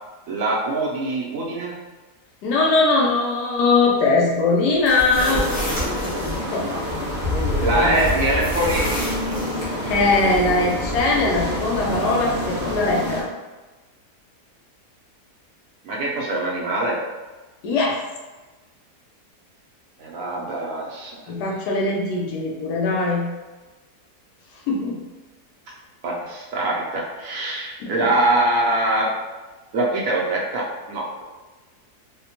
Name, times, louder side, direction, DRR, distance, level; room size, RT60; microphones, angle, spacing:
voice 1, 0.3-1.8 7.6-8.9 15.8-17.0 20.0-21.2 26.0-29.2 29.7-31.2, right 1 dB, 70° right, -3 dB, 0.9 m, -23 dB
voice 2, 2.4-5.6 6.4-6.9 7.3-8.4 9.8-13.3 17.6-18.0 21.3-23.3 24.7-25.0 27.8-28.1, left 3 dB, 80° left, -2 dB, 1.3 m, -21 dB
sound 1, 4.7-6.4 7.9-9.7, equal, 45° left, 1.2 m, -29 dB
sound 2, 5.2-13.2, left 1 dB, 15° right, 0.5 m, -26 dB
4.1 x 2.1 x 2.8 m, 1.2 s
omnidirectional pair, 1.7 m